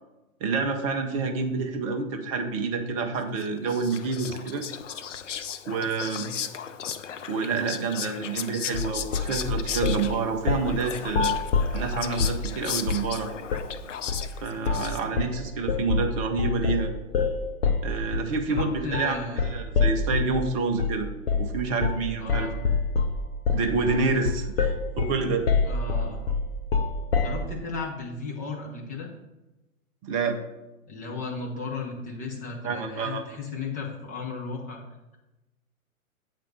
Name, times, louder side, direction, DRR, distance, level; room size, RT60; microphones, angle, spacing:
voice 1, 0.4-4.6 5.7-6.2 7.3-11.3 11.7-13.3 14.4-16.9 17.8-19.2 19.4-21.1 21.4-22.5 23.5-25.5 30.0-30.4 32.6-33.2, right 4 dB, 25° right, 5 dB, 0.7 m, -28 dB
Whispering, 3.4-15.3, left 8 dB, 60° left, 0.6 m, -36 dB
sound 1, 8.7-10.1 10.5-10.7 11.1-12.4 12.9-13.1 13.5-13.7 14.1-14.3 14.7-14.9 15.2-20.4 20.8-21.0 21.3-21.5 21.8-22.0 22.3-27.4, left 5 dB, 40° left, 1.0 m, -26 dB
voice 2, 18.5-19.5 22.2-22.6 25.6-26.2 27.2-29.1 30.9-34.8, left 4 dB, 20° left, -1 dB, 1.2 m, -35 dB
8.4 x 4.2 x 6.3 m, 0.99 s
figure-of-eight pair, 115°, 43 cm